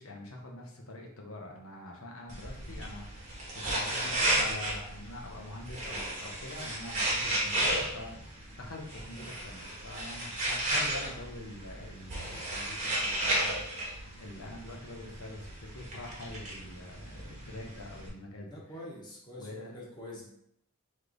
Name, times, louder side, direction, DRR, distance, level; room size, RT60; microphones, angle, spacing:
voice 1, 0.0-13.9 14.2-18.8 19.3-19.7, left 1 dB, 80° left, 0 dB, 0.9 m, -45 dB
sound 1, 2.3-18.1, right 1 dB, 35° right, 1.1 m, -34 dB
voice 2, 18.4-20.3, left 1 dB, 20° left, -4 dB, 1.1 m, -45 dB
3.3 x 3.2 x 3.8 m, 0.72 s
head